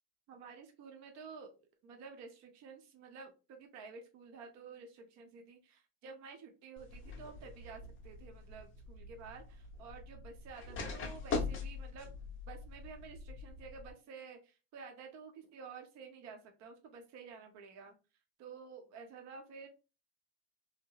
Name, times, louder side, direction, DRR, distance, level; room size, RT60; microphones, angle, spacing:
voice 1, 0.3-12.1 12.5-18.0 18.4-19.7, right 5 dB, 45° right, 4 dB, 0.7 m, -51 dB
sound 1, 6.8-13.9, left 4 dB, 30° left, 0.6 m, -43 dB
2.8 x 2.0 x 2.3 m, 0.30 s
supercardioid pair, 130°, 39 cm